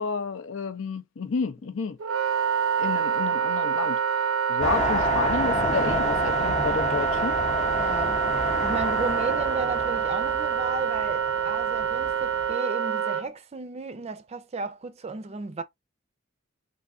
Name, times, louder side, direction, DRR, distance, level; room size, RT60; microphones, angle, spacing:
voice 1, 0.0-2.0 2.8-7.4, left 5 dB, 75° left, 0.5 m, -31 dB
Wind instrument woodwind instrument, 2.0-13.2, right 7 dB, 85° right, 0.6 m, -26 dB
sound 1, 4.6-12.5, left 2 dB, 35° left, 0.7 m, -31 dB
voice 2, 7.7-8.2 8.6-15.6, right 3 dB, 30° right, 0.4 m, -34 dB
3.4 x 2.6 x 2.4 m
head